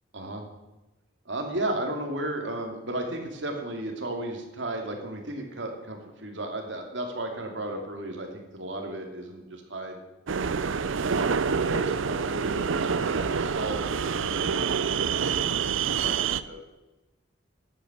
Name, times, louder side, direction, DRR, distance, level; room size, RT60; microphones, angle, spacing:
voice 1, 1.2-10.0 11.0-14.6 14.9-16.2 16.4-16.6, right 1 dB, 70° right, 2 dB, 2.9 m, -34 dB
sound 1, 10.3-16.4, right 6 dB, 90° right, 0.6 m, -27 dB
13.5 x 9.2 x 7.6 m, 1.0 s
head